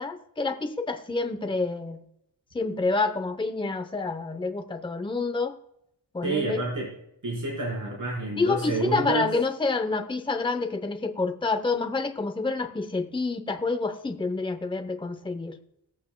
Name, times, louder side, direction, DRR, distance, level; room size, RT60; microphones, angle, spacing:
voice 1, 0.0-2.0 2.5-5.6 6.1-6.6 8.3-15.6, left 3 dB, 10° left, 8 dB, 0.7 m, -28 dB
voice 2, 6.2-6.9 7.2-9.3, right 3 dB, 45° right, -4 dB, 4.4 m, -29 dB
20.5 x 8.4 x 2.2 m, 0.79 s
wide cardioid pair, 105°, 45 cm